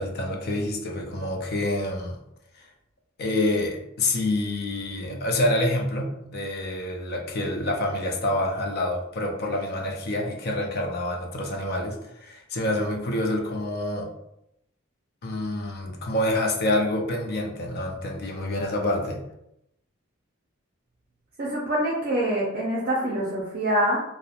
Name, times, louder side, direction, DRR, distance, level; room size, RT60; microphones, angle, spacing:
voice 1, 0.0-2.2 3.2-14.1 15.2-19.2, left 1 dB, 50° left, 1 dB, 0.5 m, -27 dB
voice 2, 21.4-24.0, right 1 dB, 50° right, -4 dB, 0.5 m, -25 dB
2.8 x 2.0 x 2.4 m, 0.81 s
head